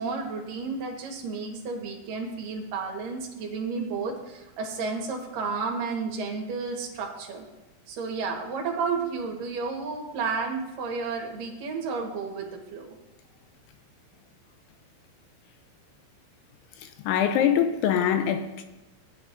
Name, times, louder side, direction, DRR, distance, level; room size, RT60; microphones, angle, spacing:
voice 1, 0.0-7.4 7.9-13.0, right 4 dB, 65° right, 2.3 m, -32 dB
voice 2, 16.8-18.6, left 9 dB, 80° left, 2.9 m, -24 dB
16.5 x 10.0 x 2.6 m
omnidirectional pair, 5.8 m